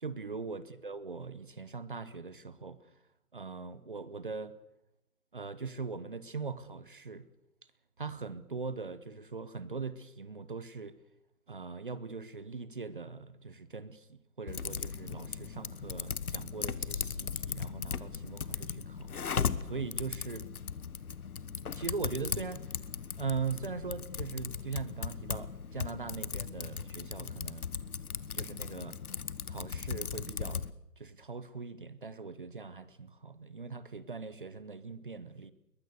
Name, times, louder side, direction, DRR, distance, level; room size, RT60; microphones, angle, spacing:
voice 1, 0.0-2.8 3.3-4.6 5.3-7.3 8.0-11.0 11.5-19.4 19.7-20.5 21.7-22.7 23.2-27.7 28.3-29.0 29.5-30.6 31.0-35.5, right 4 dB, 35° right, 16 dB, 1.0 m, -41 dB
Typing, 14.5-30.7, left 6 dB, 75° left, 1.3 m, -38 dB
22.0 x 19.5 x 6.8 m, 0.85 s
hypercardioid pair, 175°, 44 cm